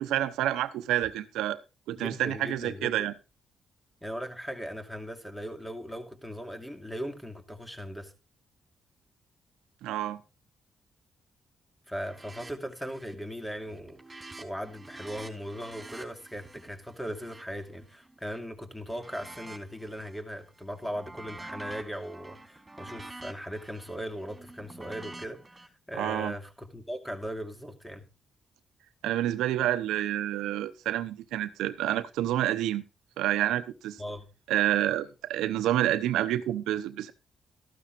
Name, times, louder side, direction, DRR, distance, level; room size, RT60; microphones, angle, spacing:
voice 1, 0.0-1.6 1.9-3.1 9.8-10.2 25.9-26.3 29.0-32.8 33.2-34.0 34.5-37.1, right 13 dB, 85° right, 0.8 m, -28 dB
voice 2, 2.0-3.1 4.0-8.1 11.9-28.1 34.0-34.3, equal, 5° left, 2.5 m, -38 dB
sound 1, 12.0-12.5 12.8-13.2 13.6-18.4 18.9-20.2 20.6-25.7, right 2 dB, 20° right, 4.0 m, -47 dB
14.0 x 12.5 x 2.6 m
supercardioid pair, 55°, 0 cm